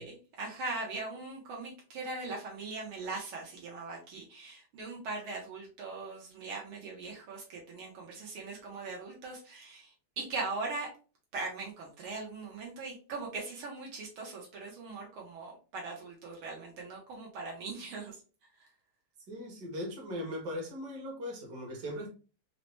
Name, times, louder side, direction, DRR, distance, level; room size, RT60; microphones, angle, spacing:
voice 1, 0.0-10.9 11.3-18.2 18.6-18.7, right 3 dB, 80° right, 1.8 m, -40 dB
voice 2, 19.3-22.1, left 1 dB, 55° right, 1.7 m, -39 dB
4.6 x 2.1 x 3.1 m
omnidirectional pair, 2.3 m